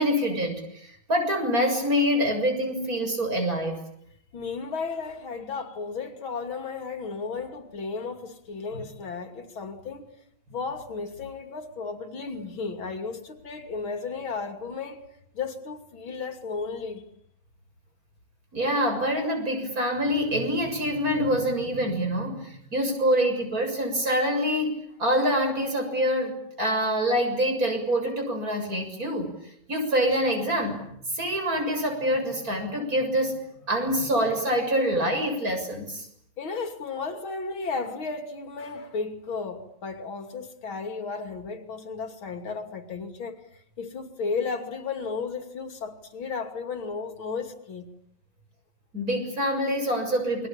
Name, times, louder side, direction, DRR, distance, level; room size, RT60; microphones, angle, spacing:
voice 1, 0.0-3.8 18.5-29.4 29.7-33.4 33.7-36.1 48.9-50.5, equal, 45° right, 7.5 m, -26 dB
voice 2, 4.3-10.1 10.5-15.0 15.3-17.0 36.4-47.9, left 4 dB, 90° left, 3.5 m, -34 dB
29.0 x 23.0 x 8.8 m
omnidirectional pair, 2.2 m